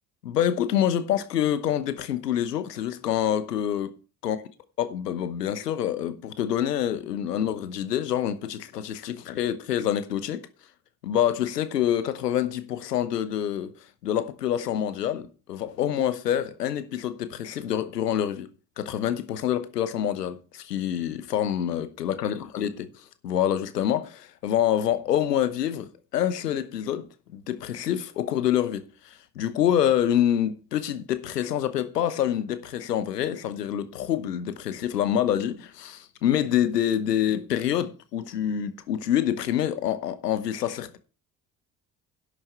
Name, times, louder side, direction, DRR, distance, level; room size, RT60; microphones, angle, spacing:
voice 1, 0.2-3.9 4.2-4.4 4.8-10.5 11.0-13.7 14.0-18.5 18.8-41.0, left 10 dB, 85° left, 1.0 m, -26 dB
11.0 x 8.3 x 4.5 m
figure-of-eight pair, 50°, 47 cm